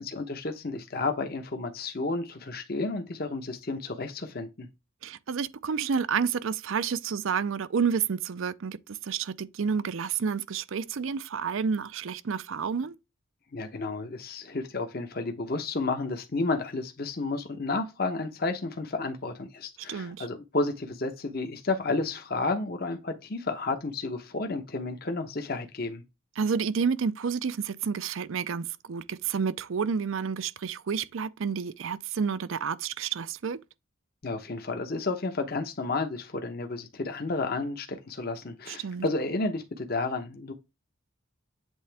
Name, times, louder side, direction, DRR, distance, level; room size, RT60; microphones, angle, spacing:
voice 1, 0.0-4.7 13.5-26.0 34.2-40.5, left 3 dB, 45° left, 0.9 m, -31 dB
voice 2, 5.0-13.0 19.9-20.3 26.4-33.6 38.7-39.1, right 6 dB, 70° right, 0.5 m, -30 dB
8.1 x 3.7 x 3.4 m
head